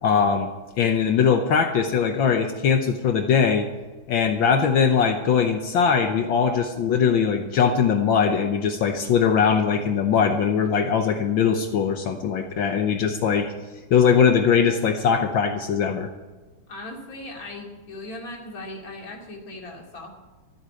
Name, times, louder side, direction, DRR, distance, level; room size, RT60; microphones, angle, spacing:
voice 1, 0.0-0.5 0.8-3.7 4.1-13.5 13.9-16.1, left 6 dB, 70° left, 6 dB, 1.6 m, -21 dB
voice 2, 16.7-20.1, left 2 dB, 40° left, 0 dB, 2.9 m, -38 dB
14.0 x 8.7 x 8.9 m, 1.3 s
omnidirectional pair, 2.3 m